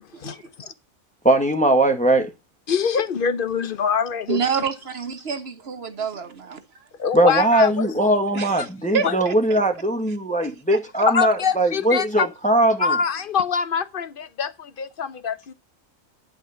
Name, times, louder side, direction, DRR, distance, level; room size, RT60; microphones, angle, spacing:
voice 1, 0.2-0.7 4.3-6.6 8.3-8.6 8.9-9.6 10.4-10.8, right 6 dB, 50° right, 1.4 m, -28 dB
voice 2, 1.2-2.3 7.1-13.0, right 1 dB, 5° left, 1.2 m, -20 dB
voice 3, 2.7-4.4 7.0-7.9 9.0-9.2 11.1-12.3 12.8-15.5, left 6 dB, 50° left, 0.8 m, -24 dB
11.0 x 4.9 x 6.7 m
omnidirectional pair, 1.4 m